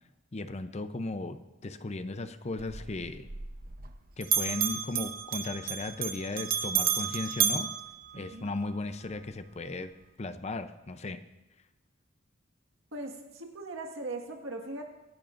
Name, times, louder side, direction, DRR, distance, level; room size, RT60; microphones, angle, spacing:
voice 1, 0.3-3.3 4.2-7.7 8.1-9.9 10.2-11.2, left 2 dB, 35° left, 10 dB, 0.6 m, -36 dB
Bell, 2.6-4.0 4.2-8.7, right 8 dB, 50° right, 0.9 m, -32 dB
voice 2, 8.1-8.5 12.9-14.9, right 2 dB, 85° right, 2 dB, 1.8 m, -40 dB
24.5 x 11.0 x 2.6 m, 1.0 s
head